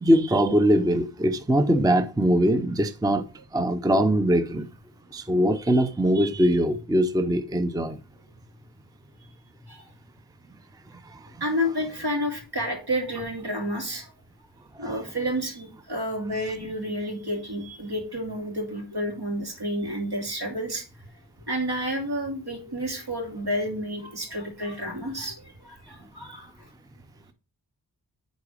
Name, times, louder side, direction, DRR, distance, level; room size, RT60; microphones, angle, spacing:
voice 1, 0.0-3.3 3.5-4.7 5.1-8.0 10.9-11.4 14.8-15.0, equal, 10° right, 0.5 m, -22 dB
voice 2, 11.4-14.1 14.8-20.9 21.5-26.7, equal, 65° right, 2.9 m, -30 dB
9.8 x 4.1 x 4.9 m
wide cardioid pair, 65°, 42 cm